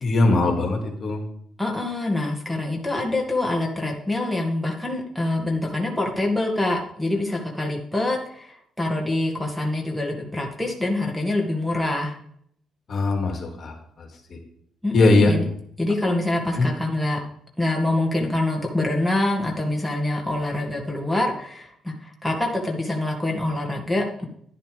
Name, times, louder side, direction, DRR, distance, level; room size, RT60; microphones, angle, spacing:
voice 1, 0.0-1.2 12.9-14.4 14.9-15.3 16.6-16.7, left 2 dB, 50° left, 3 dB, 2.3 m, -21 dB
voice 2, 1.6-12.2 14.8-15.5 15.8-17.2 17.6-24.3, left 2 dB, ahead, -1 dB, 2.1 m, -25 dB
11.0 x 10.5 x 3.4 m, 0.68 s
cardioid pair, 90°, 0 cm